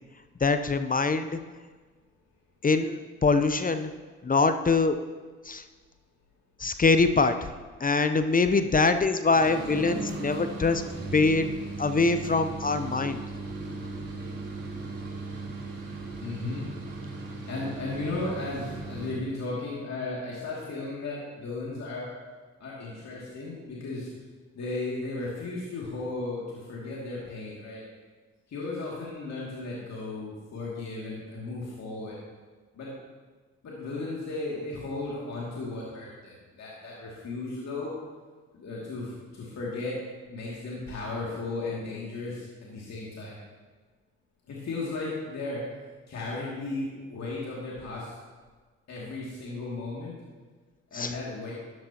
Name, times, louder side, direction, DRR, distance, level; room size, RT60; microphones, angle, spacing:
voice 1, 0.4-1.4 2.6-3.9 4.2-5.0 5.4-5.6 6.6-7.5 7.8-10.8 11.1-11.5 11.8-13.2 50.9-51.1, left 3 dB, 25° left, 9 dB, 0.7 m, -24 dB
sound 1, 9.3-19.3, right 3 dB, 45° right, 3.6 m, -37 dB
voice 2, 16.2-16.7 17.5-22.1 22.6-24.1 24.5-27.8 28.5-32.2 32.7-32.9 33.6-37.9 38.5-39.9 40.3-43.4 44.5-45.6 46.1-48.1 48.9-50.2 50.9-51.5, left 3 dB, 55° left, -5 dB, 2.5 m, -35 dB
12.5 x 11.0 x 2.9 m, 1.4 s
hypercardioid pair, 45°, 33 cm